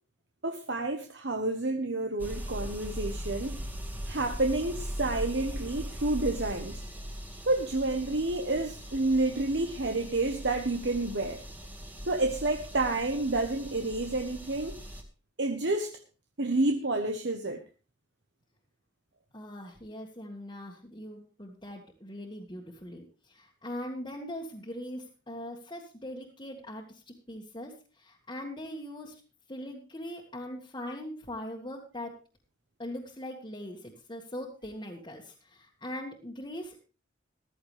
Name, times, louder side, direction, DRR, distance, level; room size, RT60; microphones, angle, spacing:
voice 1, 0.4-3.6 4.1-6.8 7.4-11.4 12.1-14.8 15.4-16.0 16.4-17.6, right 2 dB, 60° right, 5 dB, 1.2 m, -29 dB
sound 1, 2.2-15.0, equal, 10° right, 2.0 m, -40 dB
voice 2, 19.3-29.2 29.5-32.2 32.8-36.8, left 1 dB, 25° left, -3 dB, 1.9 m, -41 dB
15.0 x 13.5 x 3.4 m, 0.33 s
head